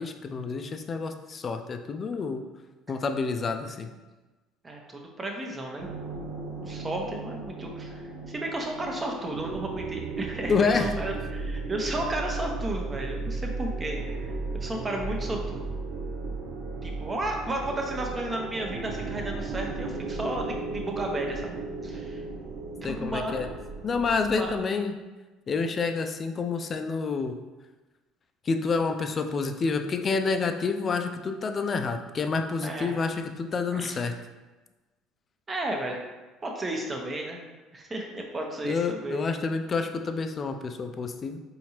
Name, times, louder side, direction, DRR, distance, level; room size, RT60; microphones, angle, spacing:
voice 1, 0.0-2.4 2.9-3.9 10.5-10.9 22.8-23.5 23.8-25.0 25.5-27.4 28.5-34.1 38.6-41.4, left 4 dB, 40° left, 7 dB, 0.4 m, -28 dB
voice 2, 4.6-5.9 6.7-14.3 14.6-15.7 16.8-21.5 21.8-22.2 22.8-23.5 24.3-24.5 32.6-33.0 33.7-34.0 35.5-36.0 36.4-37.4 37.7-39.2, right 1 dB, 25° right, 1 dB, 0.8 m, -33 dB
sound 1, 5.8-24.6, right 3 dB, 75° right, 0.5 m, -35 dB
4.4 x 2.7 x 2.9 m, 1.2 s
hypercardioid pair, 65°, 0 cm